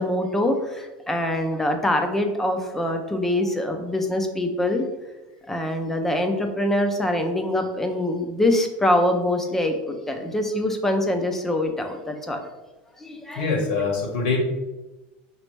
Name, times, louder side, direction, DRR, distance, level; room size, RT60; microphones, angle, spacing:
voice 1, 0.0-4.8 5.5-12.4 13.0-13.5, left 1 dB, 5° left, 5 dB, 0.3 m, -24 dB
voice 2, 13.3-14.4, left 4 dB, 80° left, 0 dB, 1.4 m, -24 dB
5.0 x 3.1 x 3.2 m, 1.1 s
supercardioid pair, 175°, 5 cm